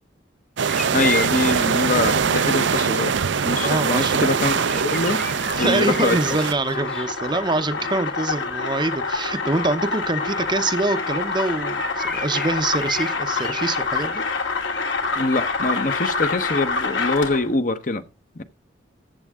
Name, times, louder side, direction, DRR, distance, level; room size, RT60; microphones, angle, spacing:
sound 1, 0.6-6.5, right 6 dB, 70° right, 0.5 m, -22 dB
sound 2, 0.7-17.6, left 1 dB, 5° left, 0.9 m, -38 dB
sound 3, 0.9-17.5, left 4 dB, 75° left, 2.4 m, -28 dB
voice 1, 0.9-3.2 3.4-5.2 5.6-6.2 15.2-18.0 18.4-18.5, left 2 dB, 45° left, 1.0 m, -24 dB
voice 2, 3.6-4.1 5.1-5.3 5.5-14.2, right 2 dB, 25° right, 0.7 m, -25 dB
14.5 x 7.7 x 3.6 m
head